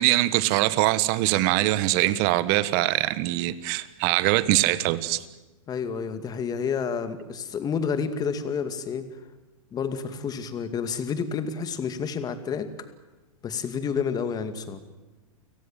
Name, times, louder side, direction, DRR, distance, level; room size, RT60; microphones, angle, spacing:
voice 1, 0.0-5.2, right 17 dB, 45° right, 1.4 m, -23 dB
voice 2, 5.7-9.1 9.7-12.7 13.4-14.8, left 6 dB, 20° left, 2.4 m, -29 dB
29.5 x 18.0 x 7.6 m
hypercardioid pair, 130°, 18 cm